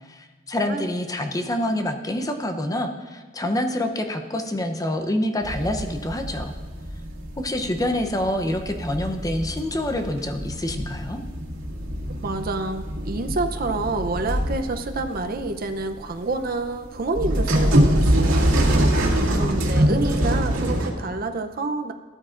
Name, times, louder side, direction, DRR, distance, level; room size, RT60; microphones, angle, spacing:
voice 1, 0.1-6.5 7.4-11.2, left 1 dB, 20° left, 5 dB, 0.7 m, -26 dB
sound 1, 5.4-20.9, right 1 dB, 85° right, 2.1 m, -24 dB
voice 2, 12.2-18.4 19.4-21.9, right 3 dB, 50° right, 6 dB, 0.6 m, -28 dB
14.5 x 13.0 x 2.5 m, 1.3 s
head